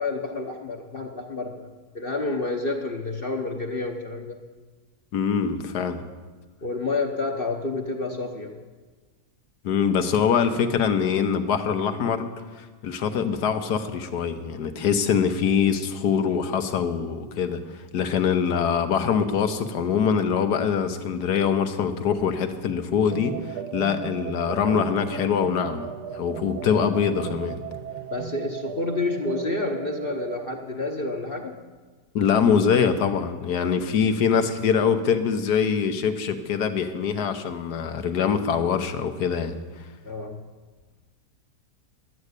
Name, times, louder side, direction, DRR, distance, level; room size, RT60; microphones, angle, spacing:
voice 1, 0.0-1.7 1.9-4.4 6.6-8.6 28.1-31.6 40.0-40.4, left 3 dB, 40° left, 2 dB, 0.9 m, -29 dB
voice 2, 5.1-6.0 9.6-12.3 12.6-17.6 17.9-23.4 23.7-25.9 26.1-27.6 32.1-39.6, left 7 dB, 80° left, 8 dB, 1.5 m, -23 dB
sound 1, 23.1-30.5, right 10 dB, 80° right, 1.1 m, -36 dB
12.0 x 9.5 x 8.1 m, 1.4 s
omnidirectional pair, 1.7 m